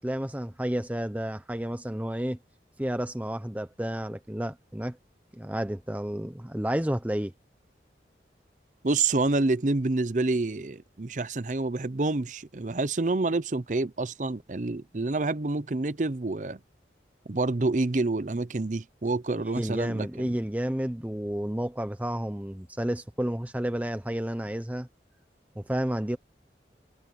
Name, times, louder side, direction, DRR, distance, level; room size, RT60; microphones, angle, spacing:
voice 1, 0.0-2.4 2.8-5.0 5.3-7.3 19.5-24.9 25.6-26.2, equal, 10° right, 0.8 m, -31 dB
voice 2, 8.8-16.6 17.3-20.4, right 3 dB, 45° right, 0.7 m, -28 dB
head